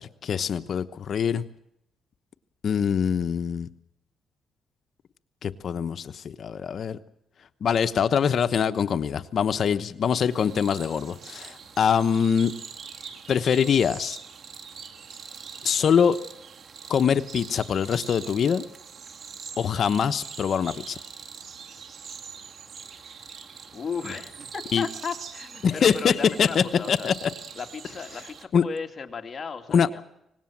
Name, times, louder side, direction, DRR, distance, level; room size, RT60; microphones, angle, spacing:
voice 1, 0.0-1.4 2.6-3.7 5.4-7.0 7.6-12.5 13.3-14.2 15.6-16.2 16.9-18.6 19.6-21.0 24.7-24.9 25.6-26.1 26.4-27.3 28.5-28.6 29.7-29.9, left 7 dB, 50° left, 11 dB, 1.0 m, -23 dB
sound 1, 10.3-28.5, right 6 dB, 50° right, 2.0 m, -43 dB
voice 2, 23.7-27.1 27.5-30.0, left 5 dB, 35° left, 5 dB, 2.7 m, -35 dB
25.0 x 19.5 x 7.4 m, 0.80 s
cardioid pair, 130°, 0 cm